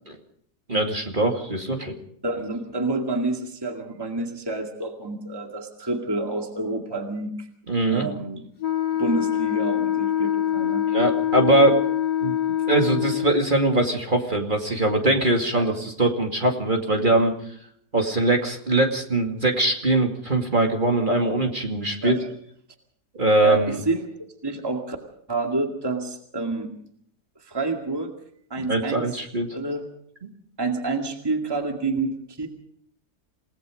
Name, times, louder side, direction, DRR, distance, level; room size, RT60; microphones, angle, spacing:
voice 1, 0.7-2.0 7.7-8.1 10.9-11.8 12.2-12.3 12.7-17.3 17.9-22.2 23.1-23.8 28.6-29.5 30.2-30.3, right 2 dB, 30° right, 3 dB, 2.5 m, -22 dB
voice 2, 2.2-7.5 7.9-8.4 9.0-10.9 15.5-15.7 22.0-22.2 23.4-24.0 24.4-25.0 25.3-26.7 27.4-28.1 28.5-29.1 29.5-29.8 30.6-32.5, right 3 dB, 15° right, 3 dB, 2.1 m, -28 dB
Wind instrument woodwind instrument, 8.6-13.5, left 11 dB, 85° left, 2.4 m, -24 dB
28.5 x 18.5 x 5.1 m, 0.67 s
omnidirectional pair, 1.7 m